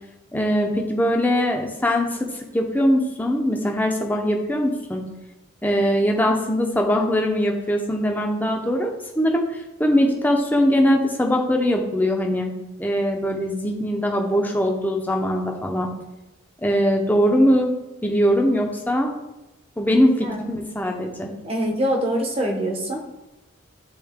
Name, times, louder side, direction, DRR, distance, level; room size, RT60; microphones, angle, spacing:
voice 1, 0.3-5.0 5.6-12.5 12.8-15.9 16.6-17.7 18.0-19.1 19.8-21.3, equal, 10° left, 2 dB, 0.7 m, -21 dB
voice 2, 21.4-23.0, equal, 30° right, 2 dB, 0.9 m, -24 dB
10.5 x 3.9 x 3.6 m, 1.0 s
head